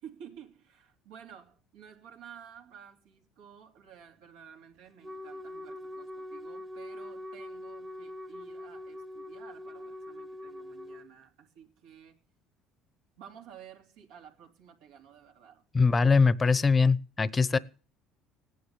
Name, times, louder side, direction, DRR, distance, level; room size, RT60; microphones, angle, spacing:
voice 1, 0.0-12.2 13.2-15.6, right 8 dB, 80° right, 2.9 m, -52 dB
Wind instrument woodwind instrument, 5.0-11.1, left 1 dB, 15° right, 1.2 m, -43 dB
voice 2, 15.7-17.6, left 4 dB, 25° left, 0.9 m, -22 dB
17.0 x 10.5 x 7.2 m
supercardioid pair, 95°, 0 cm